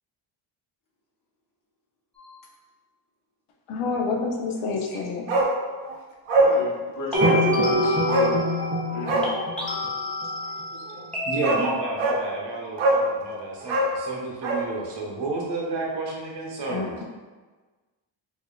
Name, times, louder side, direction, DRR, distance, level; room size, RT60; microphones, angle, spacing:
sound 1, 2.2-2.4 7.1-9.0 9.2-12.1, left 2 dB, ahead, 1.2 m, -32 dB
voice 1, 3.7-5.3 16.7-17.0, left 4 dB, 75° left, 0 dB, 0.8 m, -28 dB
Bark, 5.3-5.6 5.8-5.9 6.3-6.6 7.2-7.4 8.1-8.3 9.0-9.3 10.9-11.0 11.4-11.6 12.0-12.2 12.8-13.1 13.6-14.7 14.9-15.0, right 2 dB, 75° right, 0.8 m, -22 dB
voice 2, 6.4-8.4 8.9-9.3 10.7-11.1, left 3 dB, 40° left, -2 dB, 1.0 m, -34 dB
sound 2, 7.1-10.3, equal, 20° right, 0.7 m, -24 dB
voice 3, 11.2-17.0, right 2 dB, 55° right, -2 dB, 1.1 m, -31 dB
4.8 x 2.7 x 2.3 m, 1.3 s
cardioid pair, 75°, 49 cm